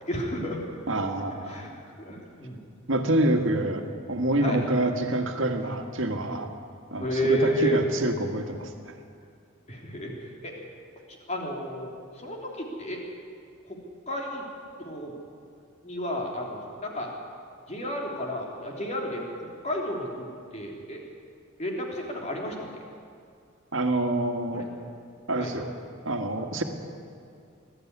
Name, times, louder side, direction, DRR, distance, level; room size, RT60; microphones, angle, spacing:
voice 1, 0.1-0.6 1.5-1.7 2.0-2.6 4.4-4.6 7.0-7.8 9.7-10.1 10.4-10.5 11.3-11.9 12.2-13.0 13.7-13.8 14.1-14.4 14.8-15.1 15.8-17.1 17.7-19.3 19.6-20.3 20.5-21.0 21.6-22.6 24.5-24.6 25.4-25.5, equal, 35° left, 0 dB, 3.3 m, -31 dB
voice 2, 0.9-1.7 2.9-6.5 6.9-8.9 23.7-24.7 25.3-25.7 26.1-26.6, right 1 dB, 70° right, 5 dB, 1.8 m, -27 dB
20.5 x 13.0 x 9.7 m, 2.4 s
head